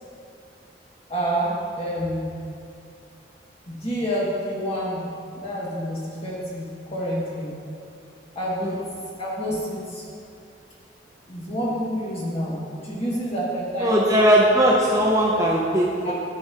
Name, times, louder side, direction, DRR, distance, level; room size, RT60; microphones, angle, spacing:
voice 1, 1.1-2.3 3.7-5.0 5.3-7.5 8.3-8.8 9.2-10.0 11.3-14.0 16.0-16.1, equal, 35° left, -7 dB, 1.8 m, -28 dB
voice 2, 13.8-16.1, equal, 20° right, -4 dB, 0.6 m, -19 dB
12.0 x 4.6 x 2.9 m, 2.5 s
head